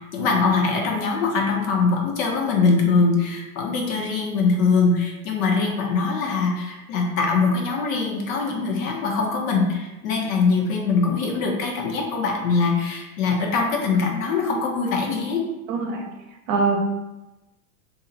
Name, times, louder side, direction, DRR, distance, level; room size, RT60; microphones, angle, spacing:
voice 1, 0.1-15.4, left 4 dB, 60° left, 1 dB, 0.9 m, -22 dB
voice 2, 15.7-16.0 16.5-16.8, right 4 dB, 55° right, 2 dB, 0.8 m, -22 dB
2.7 x 2.4 x 3.9 m, 1.0 s
hypercardioid pair, 135°, 47 cm